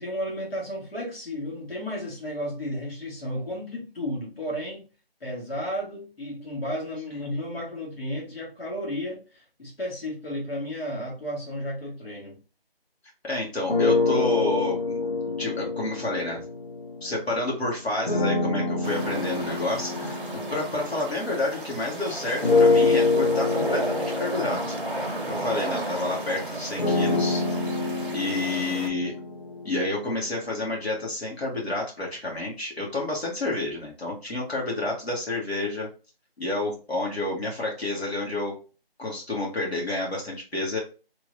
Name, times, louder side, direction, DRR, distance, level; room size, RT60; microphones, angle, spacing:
voice 1, 0.0-4.8 5.2-12.4, equal, 70° left, -3 dB, 1.7 m, -33 dB
voice 2, 13.2-16.4 17.0-24.8 25.2-27.4 28.1-29.1 29.6-35.9 36.4-38.6 39.0-40.8, left 2 dB, 85° left, -3 dB, 1.7 m, -29 dB
sound 1, 13.7-17.2 18.0-21.8 22.4-30.4, left 3 dB, 50° left, 0.8 m, -26 dB
sound 2, 18.8-28.9, right 2 dB, 55° right, 0.8 m, -34 dB
3.3 x 3.0 x 2.6 m, 0.34 s
figure-of-eight pair, 175°, 31 cm